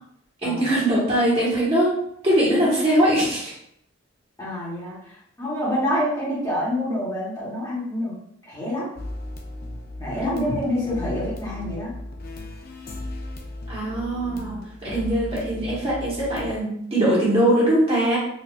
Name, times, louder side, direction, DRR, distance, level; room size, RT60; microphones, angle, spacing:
voice 1, 0.4-2.0 2.2-3.5 10.2-10.4 13.7-18.2, right 1 dB, 30° right, -7 dB, 1.2 m, -21 dB
voice 2, 4.4-8.2 8.4-8.9 10.0-11.9 14.2-15.0, left 1 dB, 15° left, -8 dB, 1.1 m, -27 dB
sound 1, 9.0-16.6, left 1 dB, 45° left, 0.5 m, -36 dB
4.2 x 2.6 x 2.4 m, 0.71 s
head